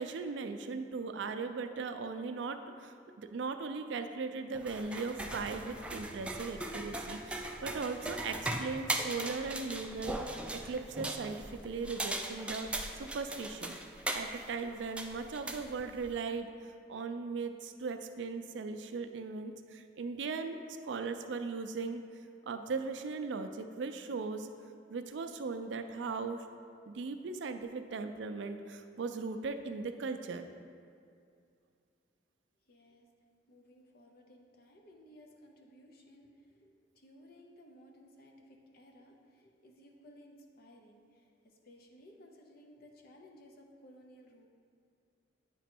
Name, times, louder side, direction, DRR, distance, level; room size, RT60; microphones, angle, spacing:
voice 1, 0.0-12.7 13.0-13.8 14.1-16.5 16.9-22.0 22.4-24.5 24.9-26.4 26.9-30.5, right 4 dB, 75° right, 8 dB, 0.4 m, -38 dB
sound 1, 4.5-16.2, right 1 dB, 5° right, 0.3 m, -39 dB
voice 2, 32.7-33.1 33.5-44.5, equal, 60° left, 2 dB, 0.7 m, -58 dB
8.9 x 3.0 x 4.4 m, 2.4 s
head